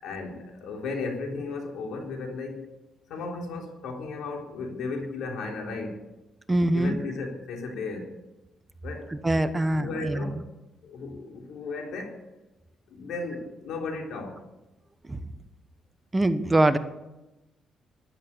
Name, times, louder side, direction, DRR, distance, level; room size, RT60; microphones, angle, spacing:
voice 1, 0.0-2.6 3.1-6.0 6.7-8.1 8.8-9.1 9.5-10.3 10.8-12.2 12.9-14.4, left 3 dB, 75° left, 1 dB, 3.8 m, -35 dB
voice 2, 6.5-7.0 9.1-10.3 15.1-15.2 16.1-16.8, right 1 dB, 20° right, 11 dB, 1.1 m, -23 dB
13.0 x 11.0 x 8.4 m, 1.0 s
cardioid pair, 90°, 0 cm